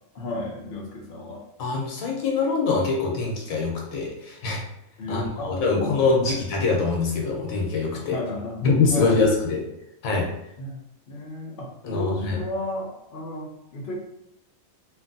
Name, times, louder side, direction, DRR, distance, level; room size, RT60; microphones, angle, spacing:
voice 1, 0.1-1.4 5.0-6.4 7.9-9.2 10.6-10.8 11.1-14.0, left 1 dB, 55° left, -1 dB, 0.7 m, -33 dB
voice 2, 1.6-4.6 5.1-8.2 8.6-9.6 10.0-10.3 11.8-12.4, left 4 dB, 80° left, -1 dB, 1.1 m, -24 dB
3.0 x 2.6 x 2.6 m, 0.82 s
omnidirectional pair, 1.4 m